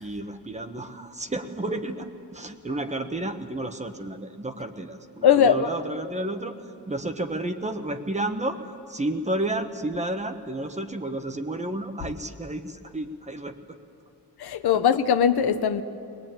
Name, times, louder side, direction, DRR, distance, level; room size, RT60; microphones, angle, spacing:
voice 1, 0.0-8.6 8.9-13.8, right 1 dB, 15° right, 1.1 m, -31 dB
voice 2, 5.2-5.7 14.4-15.8, left 8 dB, 70° left, 1.0 m, -20 dB
21.5 x 21.0 x 8.9 m
wide cardioid pair, 155°, 40 cm